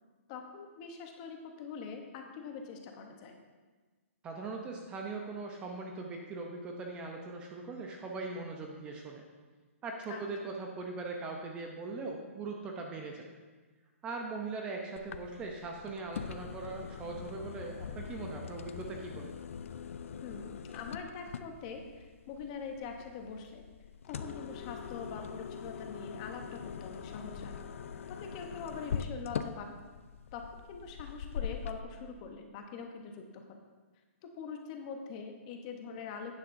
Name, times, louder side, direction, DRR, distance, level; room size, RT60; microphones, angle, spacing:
voice 1, 0.3-3.4 10.1-10.5 20.2-23.7 24.1-27.6 28.1-29.8 30.3-33.6 34.2-36.4, left 5 dB, 30° left, 4 dB, 0.9 m, -44 dB
voice 2, 4.2-9.2 9.8-13.3 14.0-19.3, right 3 dB, 15° right, 1 dB, 0.6 m, -40 dB
sound 1, 15.0-31.8, left 7 dB, 70° left, 0.5 m, -42 dB
9.7 x 9.4 x 2.6 m, 1.4 s
hypercardioid pair, 165°, 8 cm